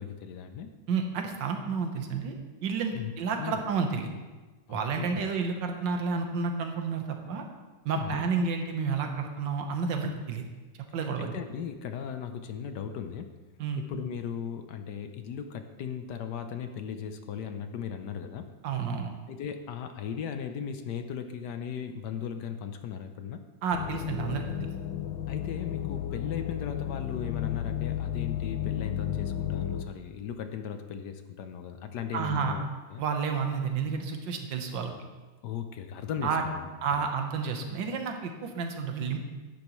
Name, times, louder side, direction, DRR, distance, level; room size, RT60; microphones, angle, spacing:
voice 1, 0.0-0.7 2.9-3.1 3.4-3.6 4.7-5.1 7.9-8.2 11.0-13.4 13.8-18.5 19.3-23.4 25.3-33.0 35.4-37.0, left 7 dB, 65° left, 7 dB, 1.2 m, -37 dB
voice 2, 0.9-2.4 2.6-4.1 4.7-7.4 7.9-10.5 10.9-11.3 13.6-13.8 18.6-19.1 23.6-24.7 32.1-32.5 33.0-34.9 36.2-36.5 36.8-39.2, right 5 dB, 70° right, 4 dB, 1.7 m, -30 dB
sound 1, 23.7-29.8, left 11 dB, 90° left, 1.5 m, -33 dB
12.0 x 10.5 x 3.1 m, 1.3 s
omnidirectional pair, 2.1 m